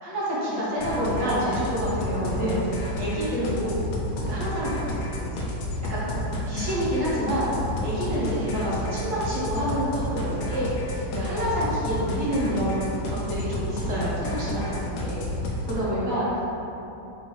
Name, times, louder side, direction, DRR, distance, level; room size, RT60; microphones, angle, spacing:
voice 1, 0.0-3.9 4.2-5.5 5.9-6.0 6.4-16.4, equal, 45° right, -9 dB, 1.2 m, -28 dB
sound 1, 0.8-15.7, left 1 dB, 90° left, 1.5 m, -30 dB
4.2 x 2.3 x 4.6 m, 3.0 s
omnidirectional pair, 2.2 m